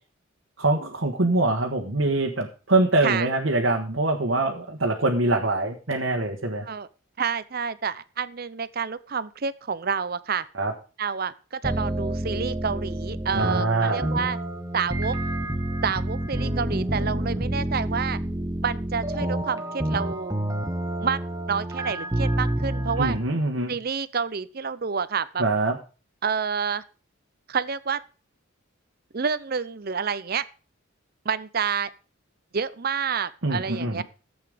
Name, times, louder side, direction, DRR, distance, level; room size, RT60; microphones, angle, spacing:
voice 1, 0.6-6.7 10.5-10.7 13.3-14.1 23.0-23.8 25.4-25.8 33.4-34.0, right 2 dB, 75° right, 1.5 m, -24 dB
voice 2, 7.2-10.4 11.0-14.4 14.7-15.2 15.8-18.2 18.6-20.4 21.0-21.2 21.5-23.2 23.7-25.4 26.2-26.8 27.5-28.0 29.1-30.4 31.2-31.9 32.5-34.0, right 6 dB, 50° right, 0.7 m, -28 dB
sound 1, 11.6-23.2, right 1 dB, 15° right, 1.4 m, -28 dB
14.5 x 8.1 x 5.1 m
head